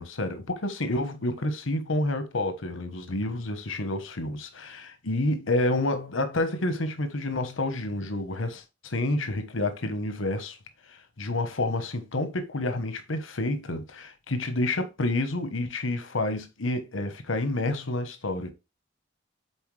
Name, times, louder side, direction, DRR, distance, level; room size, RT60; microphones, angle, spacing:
voice 1, 0.0-10.6 10.9-18.5, left 2 dB, 90° left, 1.2 m, -29 dB
7.9 x 4.1 x 3.3 m
head